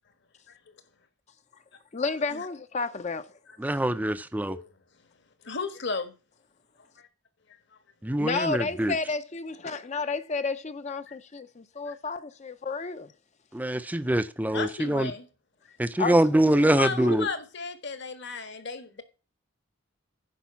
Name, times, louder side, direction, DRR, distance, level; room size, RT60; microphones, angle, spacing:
voice 1, 1.9-3.3 8.2-13.1 16.0-16.2, left 4 dB, 35° left, 0.6 m, -31 dB
voice 2, 3.6-4.6 8.0-8.9 13.5-15.1 15.8-17.3, right 1 dB, 10° right, 0.5 m, -24 dB
voice 3, 5.4-6.1 7.0-7.1 11.1-11.2 11.9-12.0 13.7-13.8 14.5-15.3 15.7-15.8 16.6-19.0, left 4 dB, 55° left, 1.5 m, -34 dB
10.5 x 5.4 x 7.0 m
head